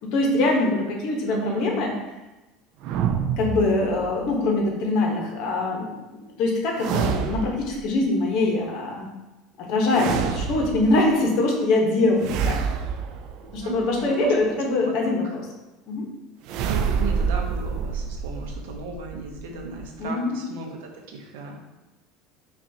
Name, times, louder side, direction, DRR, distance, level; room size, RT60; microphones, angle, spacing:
voice 1, 0.0-1.9 3.4-5.9 6.4-9.1 9.7-12.6 13.5-15.5 15.9-16.1 20.0-20.4, left 2 dB, 65° left, 0 dB, 1.0 m, -23 dB
voice 2, 1.2-1.8 13.6-14.3 14.8-14.9 15.2-15.3 16.7-21.6, right 4 dB, 85° right, 1 dB, 0.7 m, -35 dB
sound 1, 2.8-4.3 6.8-7.8 9.9-11.1 12.2-14.0 16.5-20.0, right 6 dB, 60° right, 0.3 m, -27 dB
5.3 x 2.4 x 2.8 m, 1.1 s
supercardioid pair, 120°, 0 cm